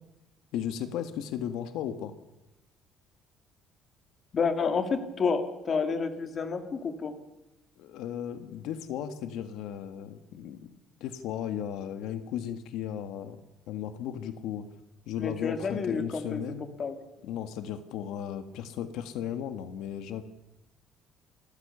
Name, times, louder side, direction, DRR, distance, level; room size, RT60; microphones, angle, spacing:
voice 1, 0.5-2.1 7.8-10.7 11.0-13.4 13.7-14.6 15.1-16.7 17.2-20.2, left 9 dB, 75° left, 9 dB, 1.6 m, -35 dB
voice 2, 4.3-7.1 15.2-16.4 16.8-17.0, left 5 dB, 30° left, 8 dB, 2.1 m, -29 dB
28.5 x 14.0 x 6.9 m, 0.96 s
cardioid pair, 165°, 0 cm